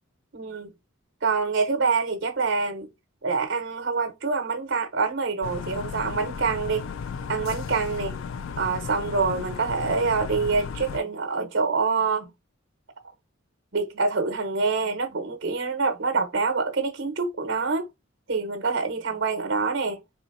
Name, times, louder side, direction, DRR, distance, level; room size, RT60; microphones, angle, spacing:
voice 1, 0.3-0.7 1.2-2.9 3.2-6.9 7.3-8.1 8.6-12.3 13.7-17.9 18.3-20.0, right 4 dB, 60° right, 0.9 m, -26 dB
sound 1, 5.4-11.0, left 6 dB, 80° left, 0.3 m, -35 dB
4.1 x 3.4 x 2.6 m
head